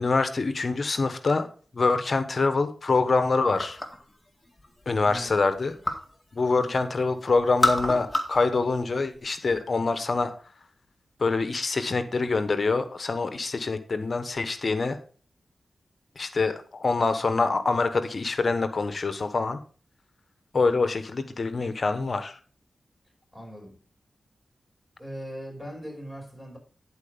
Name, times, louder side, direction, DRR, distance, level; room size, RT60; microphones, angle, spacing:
voice 1, 0.0-1.5 1.7-3.8 4.9-5.7 6.3-10.3 11.2-15.0 16.2-19.6 20.5-22.4, left 3 dB, 60° left, 1.1 m, -25 dB
item fall drop, 3.6-4.1 4.5-6.1 6.5-7.1 7.4-8.5 8.8-9.6, left 1 dB, 20° left, 1.9 m, -28 dB
voice 2, 5.0-5.4 6.5-6.9 23.3-23.8 25.0-26.6, equal, 10° right, 5.4 m, -40 dB
10.5 x 4.6 x 5.1 m
cardioid pair, 40°, 0 cm